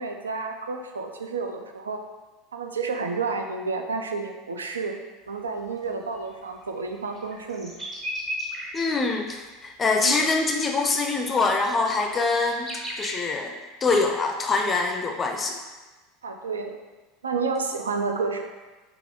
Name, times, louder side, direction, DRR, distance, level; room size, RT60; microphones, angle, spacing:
voice 1, 0.0-2.0 2.5-5.0 5.3-7.7 10.0-10.2 16.2-16.8 17.2-18.4, right 4 dB, 75° right, 4 dB, 0.4 m, -30 dB
sound 1, 5.5-5.6 5.8-5.9 6.1-8.9 10.1-10.2 10.6-13.1, equal, 25° right, 1.0 m, -36 dB
voice 2, 8.7-12.7 13.0-13.5 13.8-15.6, left 3 dB, 25° left, 3 dB, 0.4 m, -24 dB
5.8 x 2.5 x 3.4 m, 1.2 s
figure-of-eight pair, 75°, 0 cm